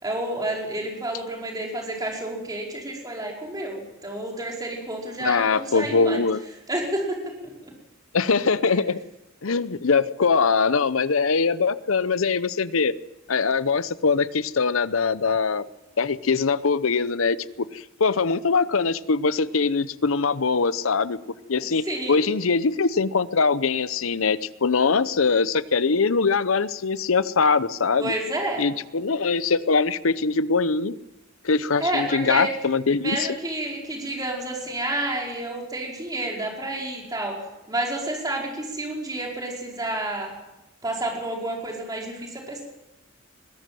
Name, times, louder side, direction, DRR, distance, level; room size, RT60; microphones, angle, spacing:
voice 1, 0.0-6.2 6.7-7.3 7.6-7.7 8.6-8.8 21.8-22.2 28.0-28.7 31.8-32.5 32.9-37.4 37.7-40.3 40.8-42.6, right 1 dB, 20° right, -1 dB, 4.9 m, -30 dB
voice 2, 5.2-6.4 8.1-9.0 9.4-12.9 13.3-15.6 16.0-21.2 21.5-21.8 22.1-28.1 28.6-31.0 31.4-33.3, left 4 dB, 85° left, 16 dB, 0.8 m, -22 dB
21.5 x 17.0 x 7.7 m, 0.98 s
head